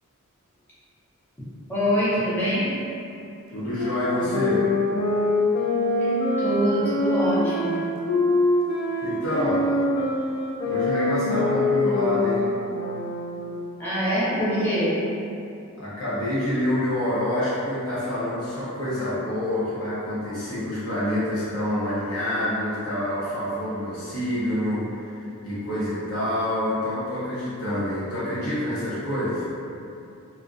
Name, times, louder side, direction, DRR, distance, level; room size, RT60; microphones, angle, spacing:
voice 1, 1.7-2.8 6.0-6.1 6.4-7.9 13.8-15.0, equal, 10° left, -13 dB, 0.6 m, -24 dB
voice 2, 3.5-4.7 9.0-9.7 10.6-12.5 15.8-29.4, left 1 dB, 85° left, -11 dB, 1.0 m, -27 dB
sound 1, 3.7-13.7, left 2 dB, 50° left, 0.3 m, -24 dB
2.4 x 2.1 x 2.5 m, 2.6 s
head